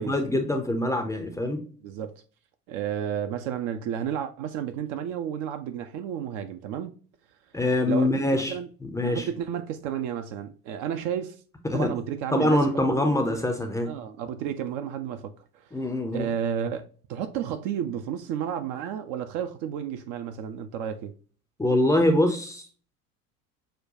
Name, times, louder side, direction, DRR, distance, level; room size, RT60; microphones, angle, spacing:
voice 1, 0.0-1.6 7.5-8.5 8.8-9.2 11.6-11.9 12.3-13.9 15.7-16.3 21.6-22.6, left 1 dB, 5° left, 0.5 m, -24 dB
voice 2, 2.7-6.9 7.8-8.7 9.0-11.4 11.7-13.0 13.9-15.7 16.1-21.1, right 9 dB, 45° right, 0.5 m, -32 dB
6.4 x 2.3 x 2.5 m
figure-of-eight pair, 65°, 46 cm